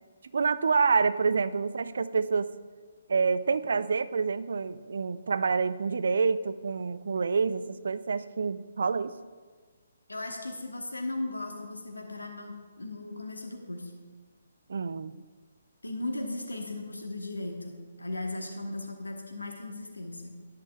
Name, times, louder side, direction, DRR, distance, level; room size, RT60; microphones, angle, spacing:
voice 1, 0.3-2.5 3.1-9.2 14.7-15.1, right 5 dB, 55° right, 15 dB, 0.3 m, -27 dB
voice 2, 10.1-13.9 15.8-20.3, left 2 dB, 75° left, 3 dB, 1.1 m, -37 dB
11.5 x 10.0 x 2.3 m, 1.5 s
figure-of-eight pair, 135°, 0 cm